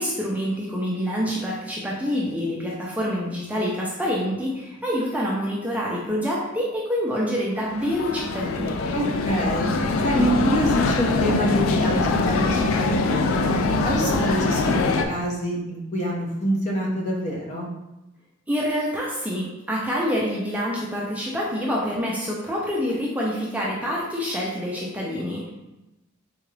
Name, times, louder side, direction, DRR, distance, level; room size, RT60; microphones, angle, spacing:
voice 1, 0.0-8.7 18.5-25.5, equal, 5° right, -4 dB, 0.4 m, -26 dB
sound 1, 7.6-15.1, left 3 dB, 80° left, 0.3 m, -23 dB
voice 2, 8.9-9.7 10.0-13.4 13.8-17.7, equal, 35° left, -2 dB, 0.7 m, -26 dB
3.7 x 2.3 x 3.2 m, 0.97 s
head